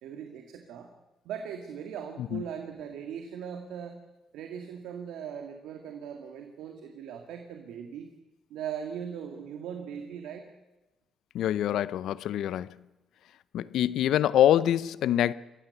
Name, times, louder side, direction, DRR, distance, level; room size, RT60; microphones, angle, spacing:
voice 1, 0.0-0.9 1.2-4.0 4.3-8.1 8.5-10.5, right 8 dB, 90° right, 2.0 m, -39 dB
voice 2, 11.3-12.7 13.5-15.3, left 11 dB, 80° left, 0.7 m, -25 dB
25.0 x 15.0 x 8.1 m
cardioid pair, 90°, 0 cm